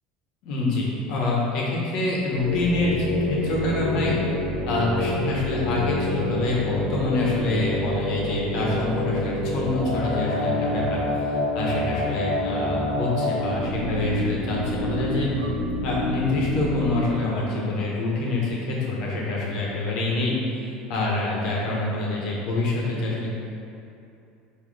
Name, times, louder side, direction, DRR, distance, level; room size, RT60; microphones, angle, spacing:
voice 1, 0.4-4.2 4.7-15.3 15.8-23.4, left 2 dB, 55° left, -4 dB, 1.4 m, -26 dB
sound 1, 2.4-17.1, left 1 dB, 90° left, 1.3 m, -27 dB
sound 2, 10.3-11.2 11.9-12.5 15.3-15.6 16.5-16.6, right 4 dB, 90° right, 0.6 m, -44 dB
5.9 x 3.2 x 5.0 m, 2.7 s
cardioid pair, 170°, 0 cm